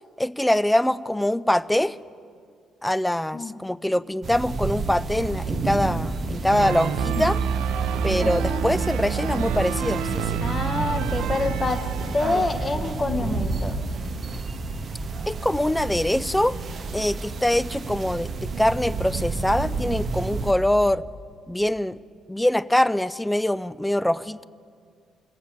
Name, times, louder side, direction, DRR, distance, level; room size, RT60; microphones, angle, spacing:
voice 1, 0.2-2.0 2.8-7.4 8.0-10.4 15.3-16.6 16.9-21.0 21.5-22.0 22.3-24.4, left 1 dB, 5° left, 17 dB, 0.4 m, -23 dB
sound 1, 4.2-20.5, right 3 dB, 45° right, 0.8 m, -30 dB
sound 2, 6.5-12.9, right 8 dB, 65° right, 0.5 m, -28 dB
voice 2, 8.2-8.6 10.4-11.8 12.1-13.8, left 3 dB, 30° left, 7 dB, 1.1 m, -27 dB
22.5 x 8.4 x 4.5 m, 2.2 s
figure-of-eight pair, 45°, 0 cm